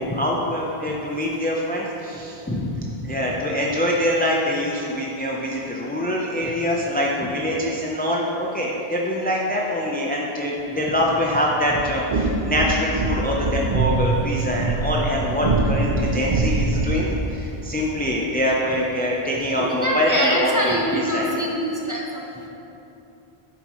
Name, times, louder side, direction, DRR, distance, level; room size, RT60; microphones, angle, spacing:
voice 1, 0.0-21.3, left 1 dB, 10° left, -3 dB, 0.6 m, -24 dB
sound 1, 11.7-17.1, right 3 dB, 40° right, 0.6 m, -23 dB
voice 2, 19.6-22.0, equal, 20° right, -3 dB, 1.0 m, -24 dB
9.8 x 7.8 x 3.1 m, 2.9 s
omnidirectional pair, 1.0 m